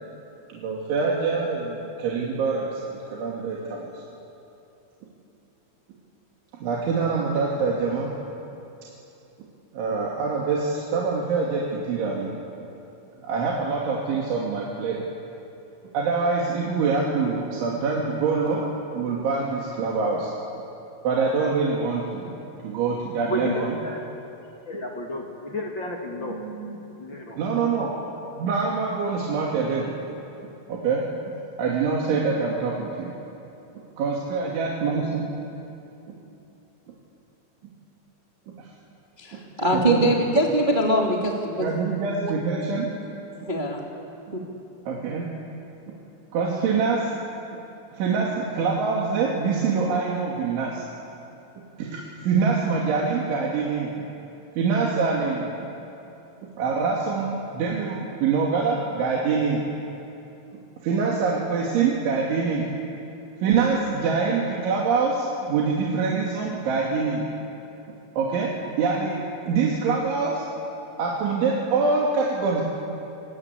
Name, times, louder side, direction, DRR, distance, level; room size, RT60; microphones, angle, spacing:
voice 1, 0.5-2.8 3.1-3.9 6.6-8.1 9.7-12.4 13.2-15.0 15.9-18.6 18.9-20.3 21.0-22.3 22.6-23.7 26.2-26.8 27.4-27.9 28.4-29.9 30.7-31.0 31.6-33.1 34.0-35.2 38.6-38.7 39.7-40.2 41.6-42.9 44.9-45.3 46.3-47.1 48.0-50.8 51.8-53.9 54.6-55.5 56.6-59.6 60.8-62.7 63.4-67.2 68.2-68.5 68.8-69.2 69.5-70.4 71.0-72.6, right 5 dB, 75° right, -3 dB, 4.9 m, -25 dB
voice 2, 23.3-24.0 24.6-26.4 27.0-27.4, left 1 dB, 35° left, 1 dB, 2.0 m, -32 dB
voice 3, 39.2-41.9 42.2-42.3 43.5-43.8 44.3-44.4, equal, 15° right, -1 dB, 1.8 m, -23 dB
28.5 x 23.5 x 8.4 m, 2.8 s
omnidirectional pair, 5.5 m